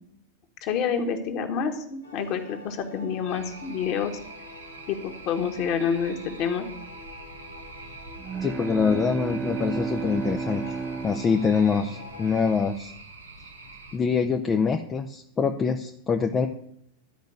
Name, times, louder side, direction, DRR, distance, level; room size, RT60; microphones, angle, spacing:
voice 1, 0.6-4.1 4.9-6.7, left 7 dB, 40° left, 5 dB, 1.7 m, -28 dB
Era of Space, 2.0-12.6, left 3 dB, 75° left, 1.5 m, -46 dB
sound 1, 3.3-14.0, right 3 dB, 80° right, 1.7 m, -45 dB
sound 2, 8.2-12.2, right 5 dB, 20° right, 0.5 m, -33 dB
voice 2, 8.4-10.6 11.0-12.9 13.9-16.5, left 5 dB, 20° left, 4 dB, 0.7 m, -24 dB
12.5 x 5.2 x 8.9 m, 0.73 s
figure-of-eight pair, 90°, 0 cm